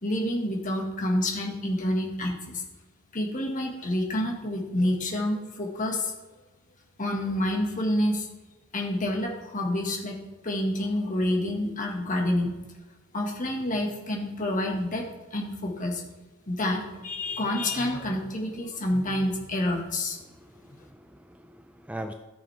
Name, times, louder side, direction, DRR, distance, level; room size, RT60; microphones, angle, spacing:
voice 1, 0.0-2.6 3.1-6.1 7.0-8.3 8.7-10.2 10.4-12.5 13.1-16.0 16.5-20.2, left 1 dB, 40° left, 1 dB, 1.9 m, -28 dB
voice 2, 20.2-22.1, right 1 dB, 5° right, 6 dB, 0.4 m, -41 dB
13.5 x 7.1 x 3.5 m, 1.2 s
head